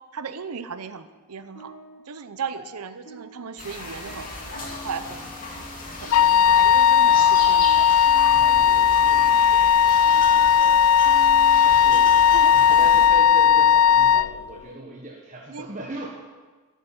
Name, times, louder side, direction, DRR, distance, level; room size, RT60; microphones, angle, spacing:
voice 1, 0.1-1.7 2.1-4.3 4.6-5.3 6.0-7.9 12.3-12.8 15.5-15.7, right 6 dB, 90° right, 11 dB, 0.7 m, -36 dB
sound 1, 1.0-14.6, left 1 dB, 85° left, 2.0 m, -46 dB
sound 2, 3.6-13.1, left 2 dB, 40° left, 2.5 m, -36 dB
Wind instrument woodwind instrument, 6.1-14.3, left 8 dB, 70° left, 0.3 m, -17 dB
voice 2, 8.3-11.4 11.6-12.2 12.5-16.1, right 1 dB, 35° right, -1 dB, 1.4 m, -39 dB
12.5 x 8.2 x 7.7 m, 1.3 s
head